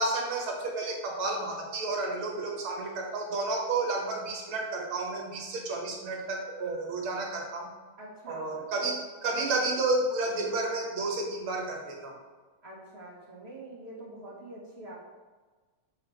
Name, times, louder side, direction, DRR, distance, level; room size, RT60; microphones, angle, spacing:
voice 1, 0.0-7.7 8.3-12.1, right 2 dB, 75° right, 0 dB, 2.2 m, -31 dB
voice 2, 8.0-8.5 12.6-15.0, right 1 dB, 30° right, -5 dB, 1.8 m, -45 dB
7.1 x 4.8 x 4.5 m, 1.4 s
omnidirectional pair, 2.3 m